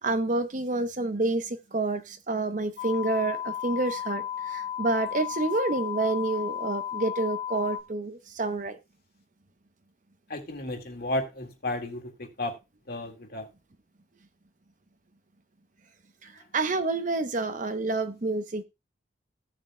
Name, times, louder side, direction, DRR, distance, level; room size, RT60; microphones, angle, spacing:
voice 1, 0.0-8.8 16.2-18.6, right 2 dB, 45° right, 0.8 m, -28 dB
sound 1, 2.8-7.8, left 10 dB, 80° left, 1.6 m, -34 dB
voice 2, 10.3-12.5 12.9-13.5, left 1 dB, 55° left, 1.8 m, -33 dB
16.0 x 7.4 x 2.2 m
head